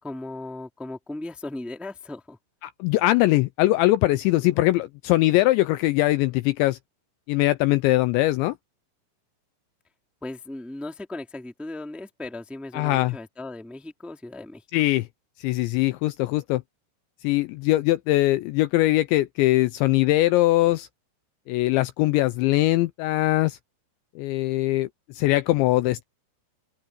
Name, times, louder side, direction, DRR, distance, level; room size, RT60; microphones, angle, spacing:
voice 1, 0.0-2.4 10.2-14.6, left 2 dB, ahead, 1.7 m, -37 dB
voice 2, 2.6-6.8 7.3-8.6 12.7-13.2 14.7-15.1 15.4-16.6 17.2-20.9 21.5-23.6 24.2-24.9 25.1-26.0, left 17 dB, 80° left, 2.7 m, -21 dB
open air
omnidirectional pair, 5.6 m